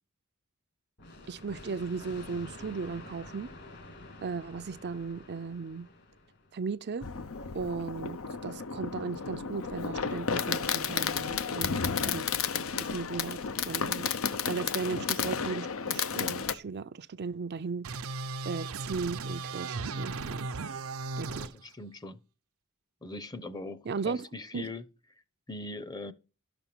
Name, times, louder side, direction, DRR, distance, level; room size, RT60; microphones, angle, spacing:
sound 1, 1.0-6.6, left 2 dB, 55° left, 2.6 m, -49 dB
voice 1, 1.3-3.5 4.2-5.9 6.5-7.1 7.5-12.3 12.8-14.1 14.5-17.9 18.4-20.5 21.2-21.5 23.9-24.3 24.5-24.6, right 5 dB, 50° right, 0.5 m, -36 dB
Fireworks, 7.0-16.6, left 6 dB, 75° left, 0.8 m, -32 dB
sound 2, 17.8-21.5, right 3 dB, 85° right, 0.7 m, -36 dB
voice 2, 21.2-22.2 23.0-24.8 25.5-26.1, left 2 dB, 20° left, 0.8 m, -41 dB
12.0 x 6.9 x 6.0 m
head